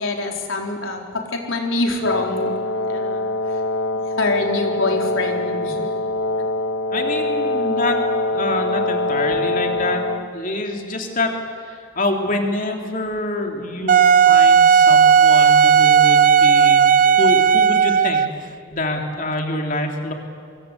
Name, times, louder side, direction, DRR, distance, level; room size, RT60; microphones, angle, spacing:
voice 1, 0.0-2.5 2.9-3.6 4.1-5.9, left 2 dB, 75° left, 1 dB, 4.0 m, -25 dB
Wind instrument woodwind instrument, 2.0-10.3, left 2 dB, 60° left, 1.2 m, -23 dB
voice 2, 6.9-8.0 8.3-10.0 10.3-20.1, left 2 dB, 40° left, 2 dB, 3.3 m, -26 dB
Wind instrument woodwind instrument 2, 13.9-18.4, right 7 dB, 40° right, 0.6 m, -13 dB
25.0 x 23.5 x 8.3 m, 2.2 s
head